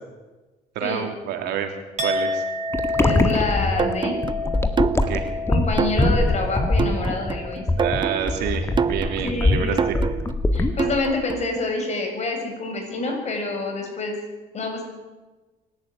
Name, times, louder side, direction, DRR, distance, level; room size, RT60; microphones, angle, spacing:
voice 1, 0.7-2.4 5.1-5.3 7.8-10.0, right 8 dB, 80° right, 4 dB, 3.3 m, -28 dB
Chink clink, 2.0-7.9 8.2-8.6, left 2 dB, 45° right, 3.7 m, -30 dB
sound 1, 2.7-11.1, left 2 dB, 15° left, 1.7 m, -23 dB
voice 2, 3.0-4.1 5.5-7.6 9.2-9.8 10.5-14.2 14.5-14.8, left 3 dB, 40° left, 3 dB, 7.1 m, -27 dB
sound 2, 3.8-11.6, right 6 dB, 30° right, 0.6 m, -28 dB
24.5 x 12.0 x 9.2 m, 1.2 s
cardioid pair, 110°, 17 cm